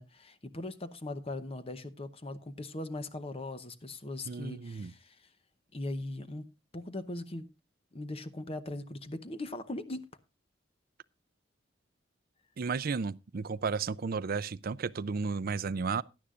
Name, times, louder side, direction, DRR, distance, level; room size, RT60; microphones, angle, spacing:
voice 1, 0.0-5.3 5.7-6.5 6.7-7.5 7.9-10.1, left 2 dB, 30° left, 0.8 m, -40 dB
voice 2, 4.3-4.9 12.6-16.0, right 5 dB, 50° right, 0.5 m, -33 dB
16.5 x 11.5 x 2.4 m
head